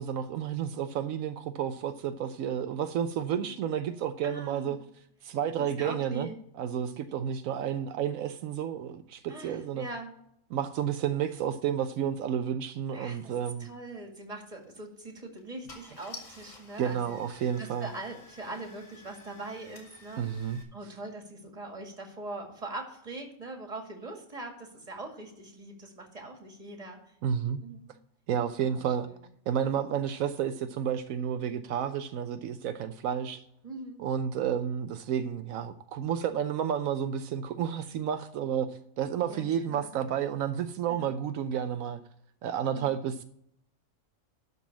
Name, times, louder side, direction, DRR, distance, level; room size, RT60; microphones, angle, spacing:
voice 1, 0.0-4.8 5.2-6.3 6.6-9.9 10.5-13.7 16.8-17.9 20.2-20.6 27.2-27.6 28.3-29.1 29.5-33.4 34.0-38.7 39.0-42.0 42.4-43.2, right 8 dB, 80° right, 1.0 m, -31 dB
voice 2, 4.2-4.8 5.6-6.4 9.3-10.1 12.9-17.2 17.6-20.3 20.7-27.0 27.6-27.9 28.6-28.8 29.1-29.2 29.6-29.8 33.6-34.1 39.3-40.0 40.9-41.1 42.7-43.0, right 2 dB, 25° right, 2.1 m, -42 dB
Car / Engine starting, 14.6-14.8 15.4-15.5 15.7-20.6, left 3 dB, 70° left, 2.6 m, -51 dB
12.0 x 4.2 x 7.1 m
omnidirectional pair, 1.4 m